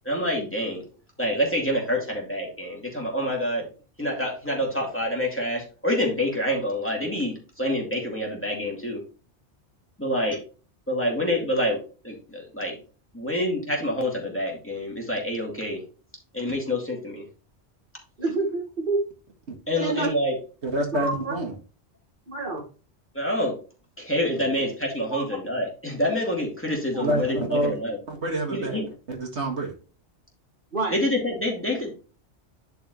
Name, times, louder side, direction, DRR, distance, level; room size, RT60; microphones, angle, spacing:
voice 1, 0.0-0.8 1.2-3.7 4.0-9.0 10.0-10.4 10.9-11.8 12.0-12.8 13.1-15.8 16.3-17.2 19.7-20.4 23.1-23.6 24.0-28.0 28.5-28.9 30.9-31.9, left 1 dB, 10° left, -1 dB, 2.4 m, -27 dB
voice 2, 18.2-19.0 19.7-20.2 20.9-21.3 22.3-22.7 25.1-25.2 26.9-27.0 30.7-31.0, right 3 dB, 50° right, -1 dB, 2.1 m, -27 dB
voice 3, 20.6-21.5 27.0-27.7 28.1-28.8 29.1-29.7, right 1 dB, 75° right, 1 dB, 2.2 m, -27 dB
10.5 x 4.7 x 3.1 m, 0.35 s
omnidirectional pair, 1.2 m